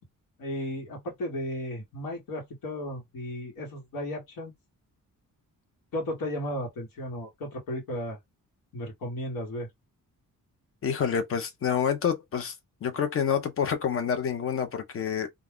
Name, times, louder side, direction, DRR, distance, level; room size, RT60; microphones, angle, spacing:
voice 1, 0.4-4.5 5.9-8.2 8.7-9.7, equal, 80° left, 1.3 m, -34 dB
voice 2, 10.8-12.5 12.8-15.3, left 7 dB, 40° left, 0.5 m, -28 dB
2.4 x 2.2 x 3.5 m
wide cardioid pair, 170°, 33 cm